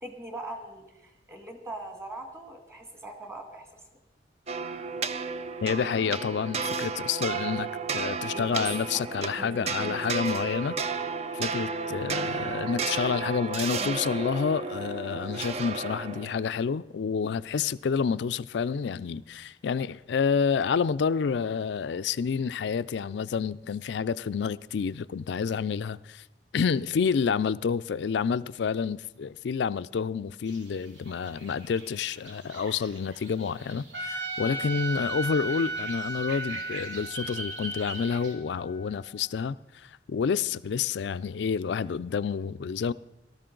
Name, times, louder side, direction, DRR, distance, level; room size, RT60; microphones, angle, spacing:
voice 1, 0.0-3.7 8.3-8.7 8.9-10.0 13.8-14.0, right 1 dB, 15° right, 1.9 m, -41 dB
sound 1, 4.5-16.5, right 4 dB, 35° right, 0.5 m, -32 dB
voice 2, 5.6-7.7 7.9-10.8 11.3-26.2 26.5-42.9, left 6 dB, 70° left, 0.4 m, -29 dB
sound 2, 30.5-38.3, right 1 dB, 90° right, 2.6 m, -44 dB
Trumpet, 33.9-39.1, right 2 dB, 70° right, 2.0 m, -35 dB
18.0 x 13.0 x 3.8 m
head